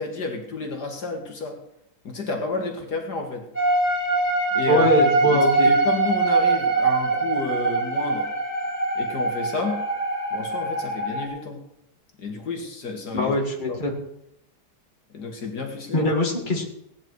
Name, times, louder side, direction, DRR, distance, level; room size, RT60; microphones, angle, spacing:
voice 1, 0.0-1.6 2.0-3.4 4.5-4.9 5.2-8.3 9.0-9.8 10.3-11.6 12.2-13.3 13.7-13.8 15.1-16.1, left 3 dB, 70° left, 2 dB, 2.4 m, -30 dB
sound 1, 3.5-11.2, right 3 dB, 10° left, 3.9 m, -23 dB
voice 2, 4.7-5.7 13.1-13.9 15.9-16.7, equal, 30° left, 0 dB, 2.5 m, -22 dB
17.5 x 9.8 x 4.7 m, 0.78 s
omnidirectional pair, 1.8 m